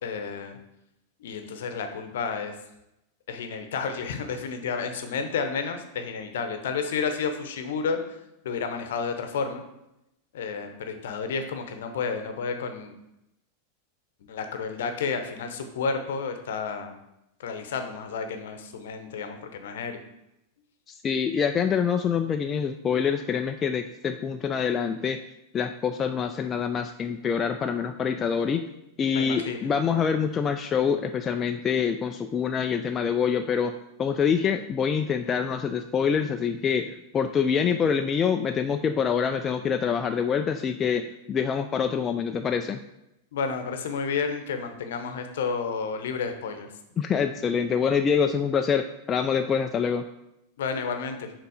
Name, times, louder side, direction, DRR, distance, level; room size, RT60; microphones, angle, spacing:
voice 1, 0.0-0.6 1.2-2.5 3.3-8.2 8.4-9.6 10.3-12.9 14.3-16.9 17.4-20.0 29.1-29.7 43.3-46.7 50.6-51.3, left 5 dB, 60° left, 7 dB, 0.8 m, -31 dB
voice 2, 20.9-25.2 25.5-28.6 29.0-33.7 34.0-42.8 47.0-50.1, left 7 dB, 25° left, 6 dB, 0.3 m, -25 dB
6.8 x 3.8 x 4.8 m, 0.88 s
figure-of-eight pair, 90°, 0 cm